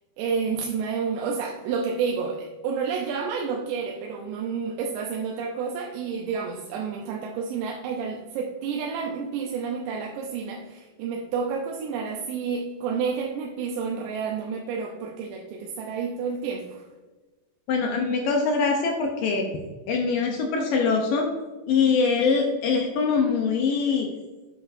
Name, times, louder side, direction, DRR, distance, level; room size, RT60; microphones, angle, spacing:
voice 1, 0.2-16.9, right 5 dB, 85° right, 0 dB, 2.9 m, -30 dB
voice 2, 17.7-19.5 19.9-21.3 21.7-24.1, left 5 dB, 75° left, 2 dB, 2.1 m, -23 dB
8.5 x 7.8 x 2.6 m, 1.2 s
omnidirectional pair, 4.8 m